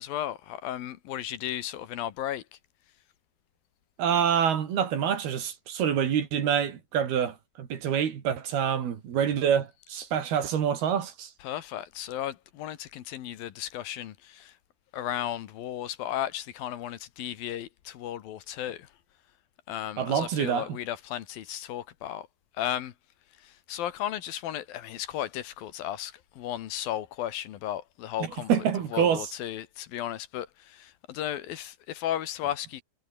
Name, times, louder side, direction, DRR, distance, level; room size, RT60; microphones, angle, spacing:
voice 1, 0.0-2.4 11.4-14.5 14.9-18.9 19.7-22.3 22.6-22.9 23.4-28.5 28.9-32.8, left 12 dB, 65° left, 2.9 m, -35 dB
voice 2, 4.0-11.3 20.0-20.8 28.2-29.3, right 8 dB, 65° right, 4.3 m, -26 dB
omnidirectional pair, 4.9 m